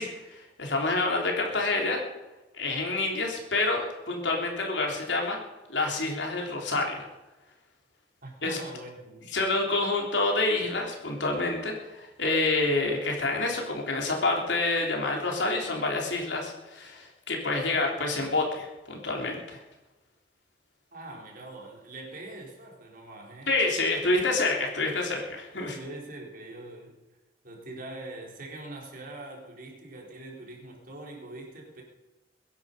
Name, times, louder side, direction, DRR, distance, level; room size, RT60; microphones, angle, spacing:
voice 1, 0.0-2.0 2.5-5.4 5.7-7.0 8.4-8.6 9.3-19.6 23.5-25.8, left 2 dB, 80° left, 0 dB, 3.6 m, -28 dB
voice 2, 8.2-9.4 20.9-23.5 25.7-27.0 27.4-31.8, right 2 dB, 50° right, -1 dB, 4.0 m, -43 dB
22.0 x 10.5 x 5.3 m, 1.1 s
head